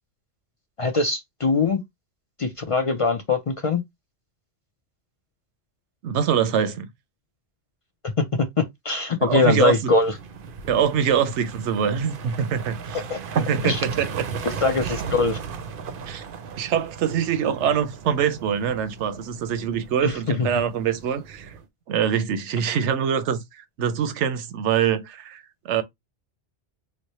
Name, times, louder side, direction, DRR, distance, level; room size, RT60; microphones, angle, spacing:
voice 1, 0.8-1.8 2.4-3.8 8.3-10.1 13.1-13.2 13.6-13.8 14.4-15.4 20.0-20.1 20.4-20.5, left 4 dB, 55° left, 0.3 m, -22 dB
voice 2, 6.0-6.9 9.2-9.8 10.7-13.0 13.3-14.3 14.8-15.0 16.1-16.2 16.6-21.6 21.9-25.8, right 8 dB, 80° right, 0.9 m, -24 dB
sound 1, 9.8-21.6, right 5 dB, 60° right, 0.7 m, -36 dB
3.2 x 2.1 x 4.0 m
omnidirectional pair, 1.2 m